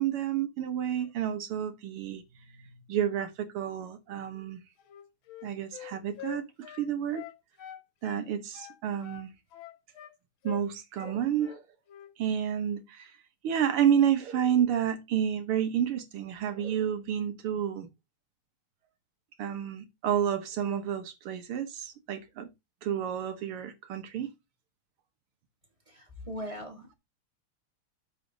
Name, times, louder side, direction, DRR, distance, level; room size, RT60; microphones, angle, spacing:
voice 1, 0.0-2.2 2.9-4.6 5.4-7.2 8.0-9.3 10.4-11.6 12.2-13.1 13.4-17.9 19.4-22.5 22.8-24.3, right 9 dB, 80° right, 2.1 m, -30 dB
Wind instrument woodwind instrument, 4.8-8.3 8.5-10.2 10.4-10.7 11.0-11.6 11.9-12.1, left 10 dB, 70° left, 1.6 m, -45 dB
voice 2, 25.9-27.0, equal, 15° right, 2.8 m, -40 dB
12.5 x 4.3 x 3.9 m
omnidirectional pair, 2.4 m